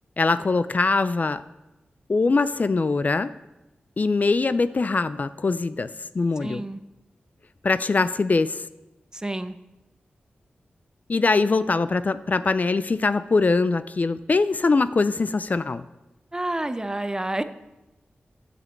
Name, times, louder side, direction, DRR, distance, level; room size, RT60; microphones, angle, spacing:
voice 1, 0.2-1.4 2.1-3.3 4.0-5.9 6.1-6.6 7.6-8.6 11.1-15.8, left 3 dB, 45° left, 14 dB, 0.4 m, -22 dB
voice 2, 6.4-6.8 9.1-9.6 16.3-17.4, right 1 dB, 20° right, 11 dB, 0.6 m, -29 dB
9.5 x 5.2 x 7.2 m, 0.98 s
cardioid pair, 60°, 4 cm